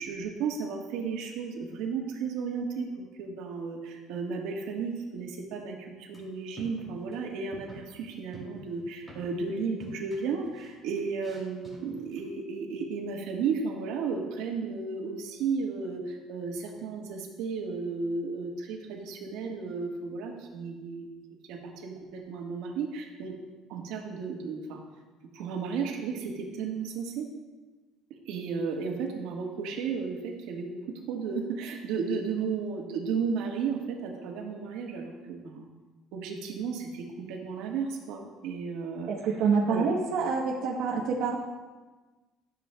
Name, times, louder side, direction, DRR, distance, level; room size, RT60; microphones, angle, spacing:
voice 1, 0.0-21.1 21.5-23.3 23.7-24.8 25.3-27.3 28.1-30.8 31.1-35.6 36.1-39.1 39.7-39.9, right 5 dB, 85° right, 1 dB, 1.3 m, -34 dB
sound 1, 6.1-6.3 6.6-7.2 7.5-7.9 8.3-9.5 9.8-12.2, equal, 5° left, 2.2 m, -48 dB
voice 2, 39.1-41.4, right 5 dB, 60° right, -2 dB, 0.9 m, -27 dB
13.0 x 7.2 x 2.2 m, 1.3 s
cardioid pair, 180°, 0 cm